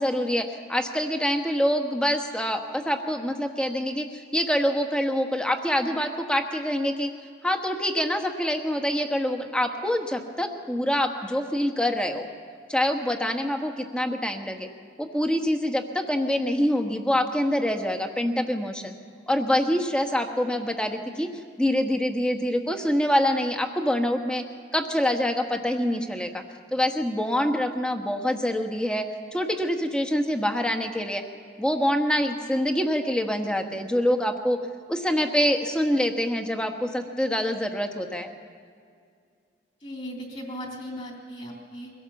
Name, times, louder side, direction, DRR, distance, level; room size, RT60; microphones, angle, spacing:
voice 1, 0.0-7.1 7.4-12.3 12.7-14.7 15.0-18.9 19.3-21.3 21.6-24.4 24.7-26.4 26.7-29.1 29.3-31.2 31.6-34.6 34.9-38.3, equal, 5° left, 4 dB, 1.3 m, -25 dB
voice 2, 39.8-41.9, equal, 35° left, 0 dB, 3.3 m, -37 dB
23.5 x 17.0 x 7.2 m, 2.3 s
head